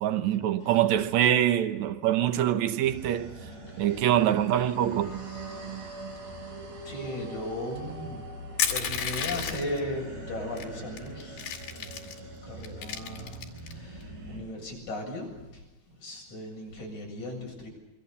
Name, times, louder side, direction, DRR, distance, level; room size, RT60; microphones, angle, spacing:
voice 1, 0.0-3.4 3.8-5.2, right 11 dB, 70° right, 1.7 m, -24 dB
sound 1, 2.8-14.4, right 2 dB, 90° right, 8.6 m, -41 dB
voice 2, 3.7-4.1 6.8-8.3 8.7-17.7, left 1 dB, 45° left, 9.3 m, -38 dB
Crushing, 8.6-9.8 10.6-10.7 11.0-12.2 12.6-13.7, left 8 dB, 75° left, 4.3 m, -31 dB
27.0 x 23.5 x 7.0 m
omnidirectional pair, 4.6 m